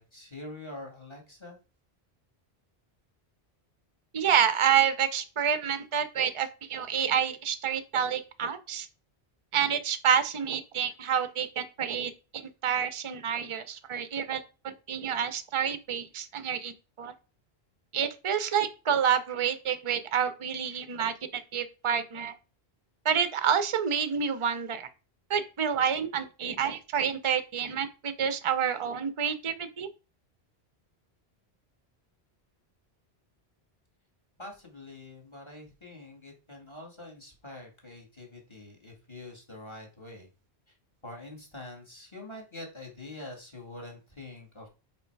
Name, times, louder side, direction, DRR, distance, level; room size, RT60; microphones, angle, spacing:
voice 1, 0.0-1.6 34.4-40.3 41.0-44.7, left 2 dB, 25° left, 1 dB, 2.0 m, -45 dB
voice 2, 4.1-8.9 9.5-17.1 17.9-22.3 23.0-24.9 25.3-29.9, right 8 dB, 35° right, 11 dB, 0.6 m, -28 dB
5.5 x 4.5 x 4.7 m, 0.33 s
omnidirectional pair, 1.1 m